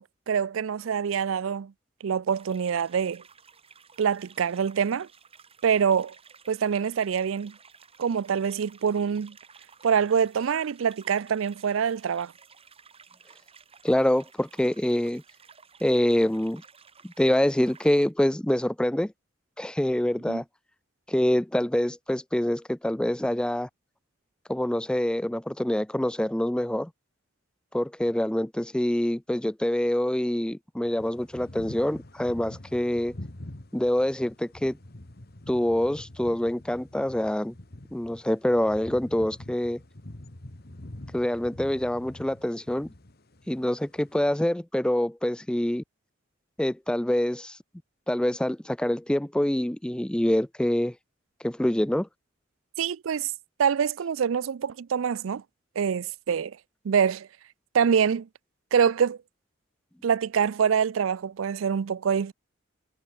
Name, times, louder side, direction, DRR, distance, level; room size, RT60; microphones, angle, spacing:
voice 1, 0.0-1.7 2.0-3.2 4.0-5.1 5.6-6.1 6.5-7.5 8.0-9.4 9.8-12.3 20.3-20.4 52.8-53.3 53.6-55.4 55.8-56.6 56.8-57.3 57.7-58.3 58.7-59.2 60.0-62.3, right 7 dB, 85° right, 0.4 m, -25 dB
sound 1, 2.3-18.1, right 6 dB, 30° right, 5.4 m, -54 dB
voice 2, 13.8-15.2 15.8-16.6 17.0-19.1 19.6-20.4 21.1-23.7 24.5-26.9 27.7-33.1 33.7-34.8 35.5-37.5 37.9-39.8 41.1-42.9 43.5-45.8 46.6-47.6 48.1-50.9 51.4-52.1, left 1 dB, 5° left, 0.3 m, -25 dB
sound 2, 31.0-44.3, left 1 dB, 50° left, 1.8 m, -45 dB
head